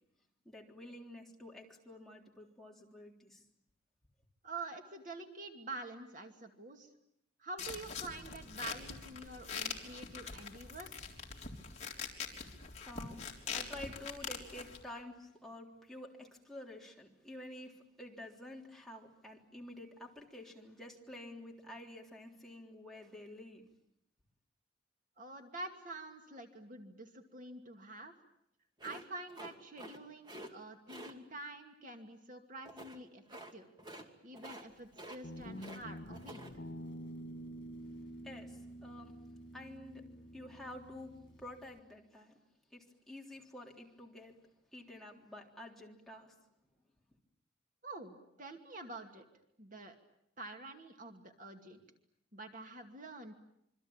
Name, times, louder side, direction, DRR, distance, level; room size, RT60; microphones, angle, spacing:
voice 1, 0.5-3.5 12.8-23.7 38.2-39.1 39.5-42.4 42.7-46.4, left 1 dB, ahead, -1 dB, 3.6 m, -50 dB
voice 2, 4.4-6.9 7.4-11.0 25.2-28.1 28.8-33.7 34.2-36.4 47.8-49.2 49.6-50.0 50.4-51.8 52.3-53.4, right 2 dB, 45° right, 4 dB, 2.5 m, -47 dB
sound 1, 7.6-14.8, left 6 dB, 40° left, 3.7 m, -43 dB
sound 2, 28.8-30.0 30.2-30.5 30.9-31.1 32.6-33.0 33.3-33.5 33.8-34.1 34.3-34.7 34.9-35.8 36.1-36.5, right 1 dB, 25° right, 2.6 m, -49 dB
Guitar, 35.2-41.8, equal, 75° left, 2.1 m, -48 dB
27.0 x 24.5 x 8.9 m, 0.78 s
head